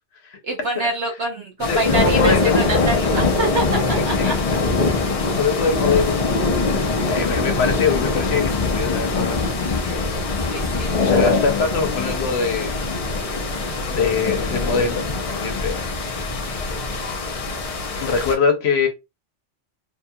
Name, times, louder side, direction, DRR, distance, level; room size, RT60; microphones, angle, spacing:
voice 1, 0.4-4.6 10.5-11.0, right 2 dB, 60° right, 0.9 m, -26 dB
voice 2, 1.6-2.6 3.9-4.3 5.4-6.3 6.6-9.4 10.4-12.8 13.4-15.9 16.8-17.0 18.0-18.9, left 5 dB, 65° left, 1.0 m, -23 dB
sound 1, 1.6-18.3, left 3 dB, 45° left, 0.5 m, -22 dB
2.7 x 2.3 x 2.6 m
omnidirectional pair, 1.2 m